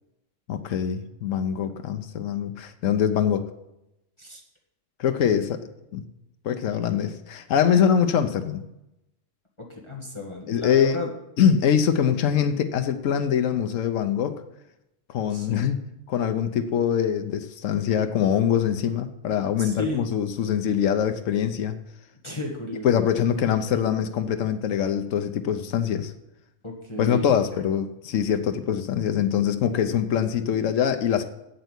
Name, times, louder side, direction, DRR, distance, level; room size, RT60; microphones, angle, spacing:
voice 1, 0.5-3.5 5.0-5.6 5.9-6.0 6.4-8.6 10.5-11.1 11.4-14.3 15.1-15.8 16.1-21.8 22.8-26.1 27.0-31.2, left 8 dB, 85° left, 7 dB, 1.1 m, -23 dB
voice 2, 9.6-11.1 15.3-15.7 19.6-20.1 22.2-23.1 26.6-27.6, left 2 dB, 25° left, 0 dB, 1.6 m, -34 dB
8.2 x 8.1 x 8.1 m, 0.89 s
omnidirectional pair, 1.3 m